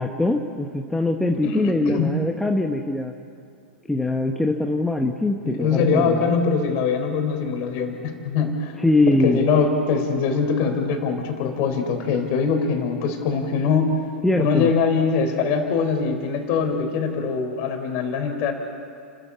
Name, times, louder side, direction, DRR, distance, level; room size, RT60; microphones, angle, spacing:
voice 1, 0.0-3.1 3.9-6.4 8.8-9.4 14.2-14.7, left 2 dB, 5° left, 3 dB, 1.1 m, -22 dB
voice 2, 1.4-2.2 5.4-8.7 9.1-14.0 14.4-18.5, left 5 dB, 40° left, 5 dB, 3.9 m, -22 dB
30.0 x 13.0 x 8.5 m, 2.4 s
figure-of-eight pair, 100°, 6 cm